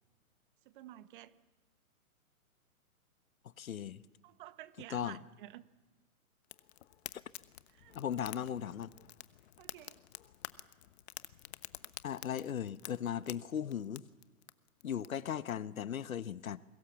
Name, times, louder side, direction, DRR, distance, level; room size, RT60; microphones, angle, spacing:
voice 1, 0.6-1.3 4.2-5.6 7.7-8.0 9.6-10.0, right 14 dB, 35° right, 14 dB, 1.2 m, -51 dB
voice 2, 3.6-4.0 4.9-5.2 7.1-7.2 7.9-8.9 12.0-14.0 14.8-16.6, left 9 dB, 65° left, 15 dB, 1.2 m, -37 dB
Fire, 6.4-15.5, left 13 dB, 45° left, 1.2 m, -50 dB
29.0 x 23.0 x 7.2 m, 1.2 s
hypercardioid pair, 130°, 44 cm